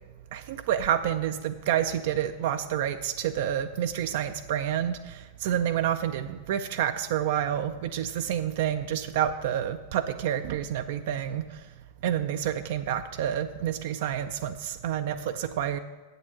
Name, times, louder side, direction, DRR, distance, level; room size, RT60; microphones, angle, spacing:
voice 1, 0.3-11.6 12.0-15.8, right 10 dB, 55° right, 8 dB, 0.4 m, -29 dB
8.1 x 6.5 x 7.2 m, 1.2 s
figure-of-eight pair, 90°, 0 cm